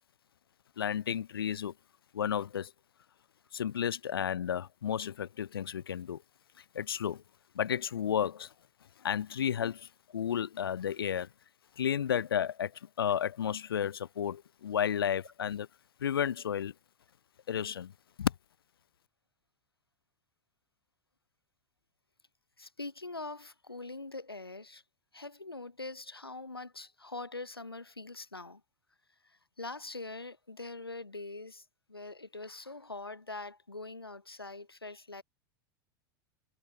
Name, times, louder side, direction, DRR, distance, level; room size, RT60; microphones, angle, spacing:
voice 1, 0.8-1.7 2.1-2.7 3.5-6.2 6.7-7.2 7.5-8.5 9.0-11.3 11.8-15.7 16.0-16.7 17.5-17.9 18.2-18.3, left 9 dB, 75° left, 0.5 m, -32 dB
voice 2, 22.6-24.8 25.1-28.6 29.2-35.2, left 3 dB, 90° left, 0.9 m, -43 dB
figure-of-eight pair, 85°, 12 cm